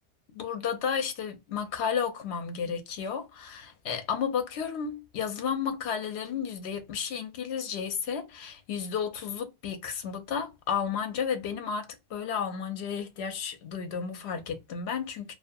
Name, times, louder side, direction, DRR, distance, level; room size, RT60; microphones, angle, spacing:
voice 1, 0.3-15.4, left 7 dB, 75° left, 0.8 m, -32 dB
2.3 x 2.2 x 2.5 m
omnidirectional pair, 1.2 m